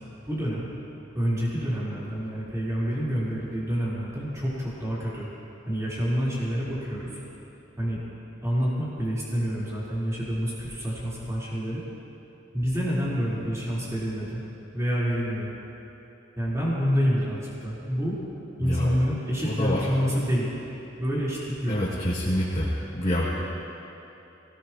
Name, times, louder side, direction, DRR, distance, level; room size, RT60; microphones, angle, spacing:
voice 1, 0.3-0.7 1.1-5.3 5.7-7.2 7.8-8.0 8.4-11.8 12.5-14.4 14.7-15.5 16.4-18.2 18.6-20.5 21.0-21.8, equal, 15° right, -9 dB, 4.3 m, -27 dB
voice 2, 18.6-19.0 19.4-19.9 21.7-22.7 22.9-23.4, left 1 dB, 30° left, -9 dB, 2.8 m, -27 dB
23.0 x 18.5 x 3.1 m, 3.0 s
head